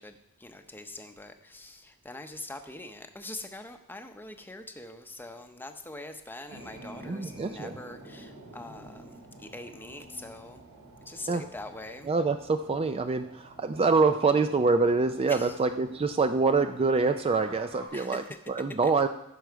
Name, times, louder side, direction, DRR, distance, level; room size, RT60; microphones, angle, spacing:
voice 1, 0.0-10.6 11.0-12.1 15.3-15.6 17.9-18.4 18.8-18.9, left 2 dB, 10° left, 6 dB, 0.8 m, -43 dB
sound 1, 6.5-17.9, right 2 dB, 65° right, 3.1 m, -49 dB
voice 2, 7.0-7.7 11.3-11.4 12.1-13.3 13.6-18.2 18.5-19.1, right 4 dB, 25° right, 8 dB, 0.3 m, -25 dB
15.5 x 6.2 x 4.6 m, 0.84 s
head